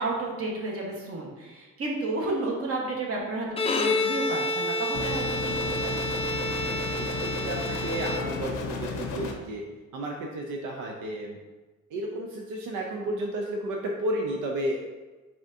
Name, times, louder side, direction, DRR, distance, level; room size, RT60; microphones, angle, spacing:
voice 1, 0.0-3.5 3.7-6.0, right 2 dB, 50° right, -2 dB, 1.2 m, -31 dB
Bowed string instrument, 3.5-8.7, left 1 dB, 20° left, 0.4 m, -29 dB
sound 1, 4.9-9.3, left 5 dB, 80° left, 0.7 m, -33 dB
voice 2, 7.4-9.6 9.9-11.4 11.9-14.8, right 1 dB, 85° right, 0 dB, 0.6 m, -32 dB
4.9 x 3.6 x 2.6 m, 1.3 s
cardioid pair, 90°, 30 cm